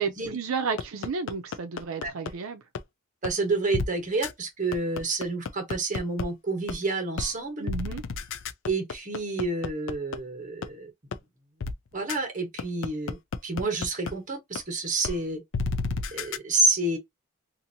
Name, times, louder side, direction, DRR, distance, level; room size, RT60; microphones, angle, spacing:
voice 1, 0.0-2.6 7.6-8.0, right 5 dB, 85° right, 0.5 m, -32 dB
sound 1, 0.8-2.3 2.8-2.9 3.2-3.3 3.7-3.9 4.2-4.3 4.7-6.2 6.7-6.8 7.2-7.3 7.7-10.2 10.6-10.7 11.1-11.2 11.6-11.7 12.1-12.2 12.6-14.1 14.6-14.7 15.0-15.1 15.5-16.4, left 4 dB, 65° left, 0.4 m, -30 dB
voice 2, 3.2-7.7 8.7-10.9 11.9-13.2 13.4-15.4 16.1-17.0, right 3 dB, 40° right, 1.2 m, -29 dB
2.8 x 2.5 x 2.7 m
head